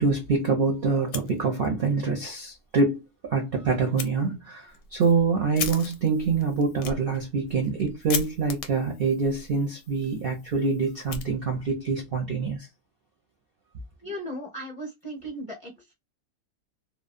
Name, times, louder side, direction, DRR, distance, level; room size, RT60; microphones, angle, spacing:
voice 1, 0.0-12.7, right 4 dB, 65° right, 0.5 m, -25 dB
Fire, 1.0-1.9 2.2-2.3 2.7-2.8 4.0-4.1 4.7-11.8, left 6 dB, 70° left, 0.9 m, -38 dB
voice 2, 14.0-15.9, equal, 30° left, 0.7 m, -37 dB
3.0 x 2.1 x 2.4 m
omnidirectional pair, 1.6 m